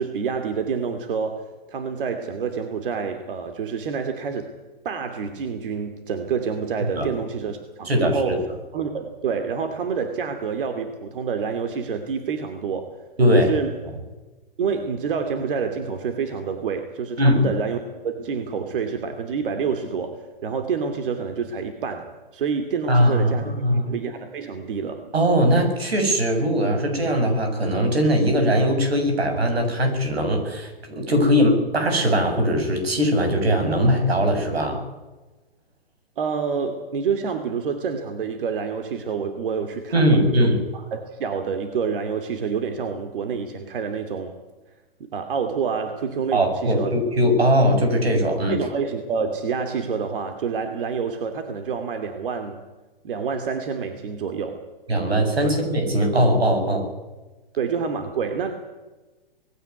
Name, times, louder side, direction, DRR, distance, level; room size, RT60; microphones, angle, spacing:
voice 1, 0.0-4.5 4.8-13.0 13.3-13.8 14.6-23.5 23.9-25.1 36.2-44.3 45.0-47.0 48.5-52.6 53.0-54.6 55.4-55.5 57.6-58.5, right 6 dB, 60° right, 7 dB, 2.8 m, -28 dB
voice 2, 7.8-8.4 13.2-13.5 17.2-17.5 22.9-23.9 25.1-34.8 39.9-40.6 46.3-48.6 54.9-56.9, equal, 90° right, 5 dB, 7.6 m, -20 dB
20.0 x 17.0 x 9.6 m, 1.2 s
hypercardioid pair, 140°, 30 cm